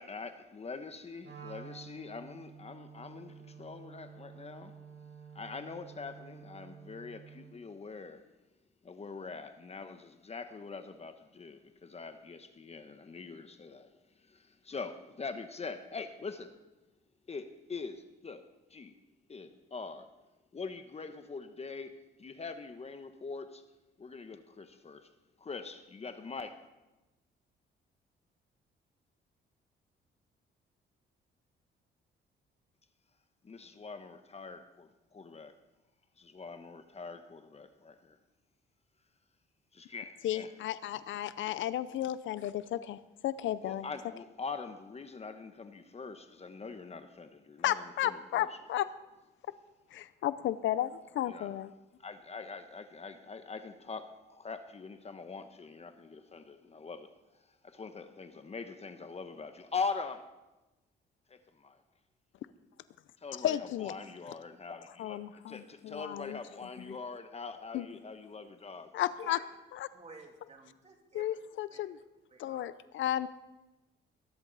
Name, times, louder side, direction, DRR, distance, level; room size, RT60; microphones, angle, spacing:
voice 1, 0.0-4.7 5.3-8.2 8.8-13.9 14.3-16.5 17.3-18.9 19.3-20.1 20.5-23.6 24.0-25.1 25.4-26.6 33.4-35.5 36.2-38.2 39.7-40.5 43.6-48.6 51.3-51.5 52.0-57.1 57.6-60.3 61.3-61.8 63.2-68.9, left 4 dB, 30° left, 1.1 m, -43 dB
Wind instrument woodwind instrument, 1.2-7.6, right 7 dB, 65° right, 3.8 m, -51 dB
voice 2, 40.2-43.9 47.6-48.9 49.9-51.7 63.4-63.9 65.0-66.4 66.9-67.0 67.7-67.9 68.9-69.4 69.7-69.9 71.1-72.0 72.4-73.3, left 12 dB, 75° left, 0.6 m, -33 dB
voice 3, 69.9-71.4 71.7-71.8 72.3-72.6, right 3 dB, 35° right, 2.9 m, -52 dB
21.0 x 11.0 x 4.1 m
cardioid pair, 90°, 20 cm